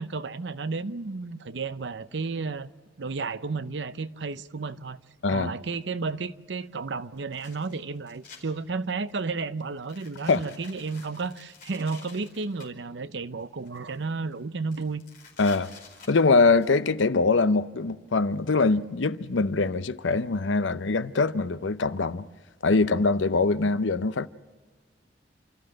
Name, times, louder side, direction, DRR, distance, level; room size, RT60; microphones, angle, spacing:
voice 1, 0.0-2.7 3.0-5.0 5.3-15.0, right 4 dB, 70° right, 0.7 m, -32 dB
sound 1, 5.8-5.9 7.2-8.4 8.9-9.2 9.8-12.7 13.4-14.0 14.3-14.4 14.7-16.8, left 5 dB, 45° left, 4.8 m, -50 dB
voice 2, 15.4-15.7 16.1-22.3 22.6-24.3, left 3 dB, 80° left, 0.7 m, -23 dB
29.5 x 13.5 x 7.7 m
head